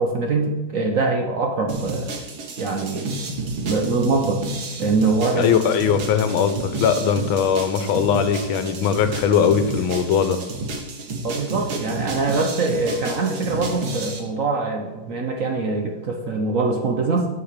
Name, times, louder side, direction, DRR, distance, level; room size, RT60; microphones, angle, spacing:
voice 1, 0.0-2.1 2.6-3.2 3.6-4.4 4.8-5.6 11.2-17.3, right 3 dB, 60° right, 2 dB, 0.9 m, -23 dB
sound 1, 1.7-14.2, right 2 dB, 75° right, 2.1 m, -31 dB
voice 2, 5.3-10.4, left 7 dB, 85° left, 10 dB, 1.5 m, -20 dB
10.0 x 4.8 x 6.6 m, 1.2 s
omnidirectional pair, 2.2 m